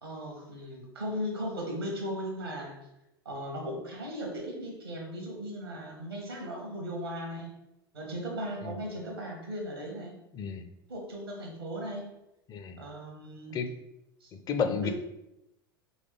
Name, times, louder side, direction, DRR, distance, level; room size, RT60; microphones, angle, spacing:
voice 1, 0.0-2.8 3.2-7.5 7.9-10.1 10.9-12.1 12.8-13.5 14.2-14.3 14.8-14.9, equal, 90° right, 0 dB, 1.1 m, -37 dB
voice 2, 12.5-12.8 13.5-13.7 14.5-14.9, left 6 dB, 30° left, 8 dB, 0.5 m, -31 dB
4.0 x 3.2 x 3.4 m, 0.89 s
figure-of-eight pair, 80°, 12 cm